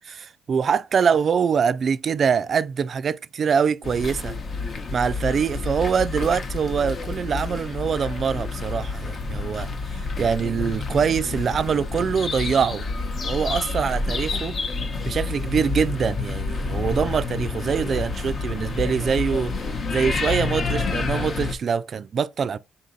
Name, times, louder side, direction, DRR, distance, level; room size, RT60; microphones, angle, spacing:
voice 1, 0.1-4.3 4.9-12.8 13.2-14.6 15.0-19.5 19.9-22.6, right 6 dB, 50° right, 0.3 m, -24 dB
sound 1, 3.8-21.5, left 3 dB, 50° left, 0.8 m, -29 dB
3.8 x 2.7 x 3.8 m
cardioid pair, 90°, 0 cm